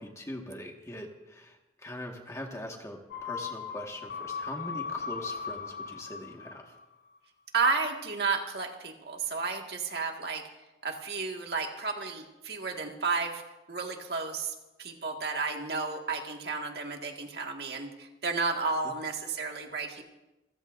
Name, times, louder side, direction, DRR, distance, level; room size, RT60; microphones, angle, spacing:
voice 1, 0.0-6.7, left 1 dB, 15° left, 1 dB, 1.7 m, -42 dB
sound 1, 3.1-6.9 7.2-7.3, left 6 dB, 65° left, 1.2 m, -38 dB
voice 2, 7.5-10.5 10.8-13.4 13.7-20.0, right 4 dB, 65° right, 2 dB, 1.9 m, -32 dB
28.0 x 15.0 x 2.7 m, 1.0 s
head